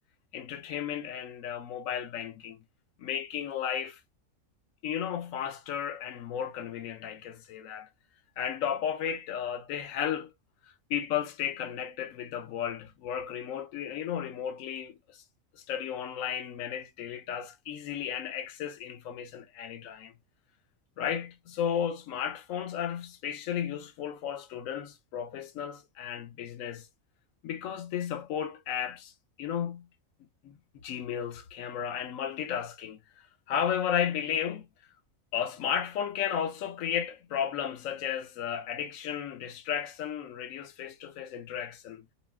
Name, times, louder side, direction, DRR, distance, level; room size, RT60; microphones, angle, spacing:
voice 1, 0.3-2.6 3.0-4.0 4.8-7.9 8.4-10.3 10.9-15.2 15.5-20.1 21.0-26.9 27.4-29.1 29.4-29.9 30.4-30.5 30.8-33.0 33.5-34.7 35.3-42.1, left 9 dB, 75° left, 1.0 m, -34 dB
2.5 x 2.0 x 3.3 m
omnidirectional pair, 1.4 m